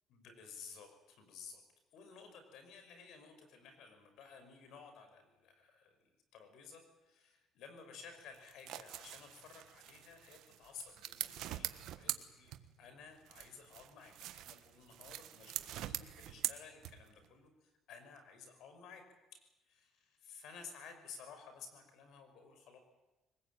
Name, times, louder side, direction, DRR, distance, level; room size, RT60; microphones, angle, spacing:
voice 1, 0.1-1.6 1.9-19.0 19.3-19.4 19.7-22.8, left 5 dB, 75° left, 7 dB, 5.9 m, -55 dB
sound 1, 8.3-12.9 13.3-17.2, right 13 dB, 75° right, 1.4 m, -44 dB
23.0 x 20.0 x 9.2 m, 1.0 s
cardioid pair, 90°, 0 cm